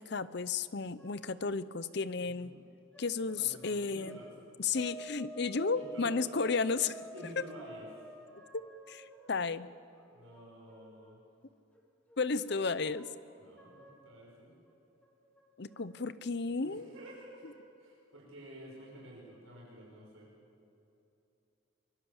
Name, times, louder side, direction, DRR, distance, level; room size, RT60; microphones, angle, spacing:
voice 1, 0.0-2.6 3.0-4.2 4.6-7.0 8.5-9.7 12.2-13.1 15.6-16.9, left 4 dB, 55° left, 16 dB, 0.7 m, -33 dB
sound 1, 1.0-1.6 2.9-4.5 4.7-11.2 11.7-13.2 13.6-14.1 14.6-14.7 15.0-15.9, equal, 5° left, 2.6 m, -52 dB
voice 2, 2.1-2.6 3.3-4.3 5.7-6.3 7.1-7.9 10.1-11.2 13.4-14.5 16.6-20.3, right 1 dB, 80° right, -3 dB, 5.8 m, -51 dB
23.5 x 22.5 x 7.3 m, 2.8 s
head